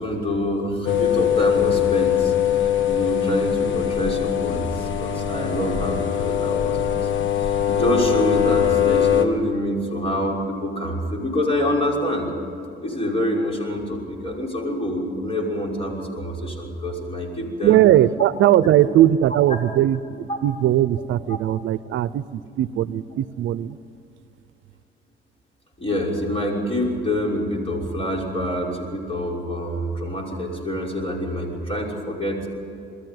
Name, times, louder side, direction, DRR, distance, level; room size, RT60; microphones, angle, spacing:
voice 1, 0.0-7.1 7.4-12.3 12.8-17.8 18.8-18.9 20.3-20.4 25.8-32.5, equal, 30° left, -1 dB, 5.9 m, -26 dB
sound 1, 0.9-9.3, left 10 dB, 70° left, 1.6 m, -22 dB
voice 2, 17.6-23.8, right 12 dB, 80° right, 16 dB, 0.7 m, -19 dB
22.0 x 14.0 x 9.4 m, 2.8 s
cardioid pair, 90°, 20 cm